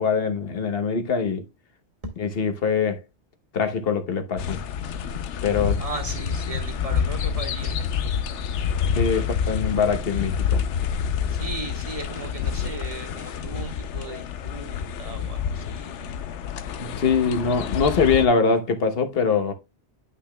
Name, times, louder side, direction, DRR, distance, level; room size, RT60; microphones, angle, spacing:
voice 1, 0.0-1.4 2.2-3.0 3.5-4.6 5.4-5.8 9.0-10.6 16.8-19.5, left 5 dB, 60° left, 1.2 m, -23 dB
sound 1, 4.4-18.3, left 7 dB, 85° left, 1.0 m, -28 dB
voice 2, 5.8-8.0 8.3-8.7 9.1-9.5 11.3-15.9, right 2 dB, 30° right, 1.5 m, -37 dB
10.5 x 5.7 x 2.2 m
omnidirectional pair, 1.2 m